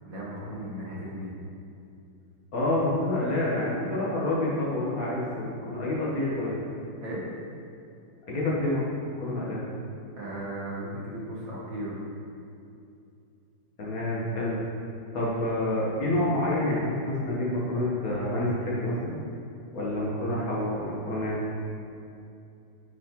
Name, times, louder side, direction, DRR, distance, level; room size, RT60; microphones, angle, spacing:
voice 1, 0.0-1.3 7.0-7.2 10.2-12.0, right 1 dB, 50° right, -6 dB, 1.2 m, -36 dB
voice 2, 2.5-6.5 8.3-8.8 9.2-9.6 13.8-14.6 15.1-19.1 19.7-21.4, left 1 dB, 50° left, -6 dB, 1.3 m, -28 dB
9.1 x 4.1 x 2.9 m, 2.6 s
omnidirectional pair, 2.3 m